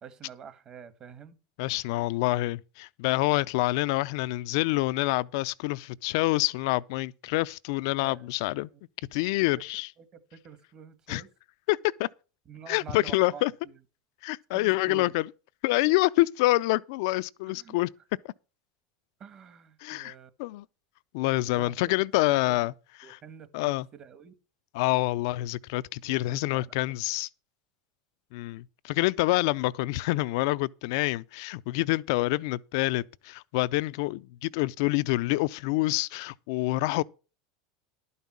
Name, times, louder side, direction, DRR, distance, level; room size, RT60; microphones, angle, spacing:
voice 1, 0.0-2.0 7.9-8.3 8.7-8.8 9.5-9.6 10.0-11.3 12.4-13.8 14.5-15.1 17.5-17.8 19.2-20.3 21.4-21.7 22.2-22.7 23.0-24.3 26.0-26.7, right 7 dB, 35° right, 1.4 m, -48 dB
voice 2, 1.6-8.7 9.1-9.9 11.1-11.2 11.7-12.1 12.7-13.5 14.2-15.3 15.6-17.9 19.8-20.1 20.4-20.6 21.1-22.7 23.5-23.9 24.7-27.3 28.3-37.0, left 20 dB, 70° left, 0.4 m, -27 dB
11.5 x 5.5 x 7.3 m
supercardioid pair, 130°, 2 cm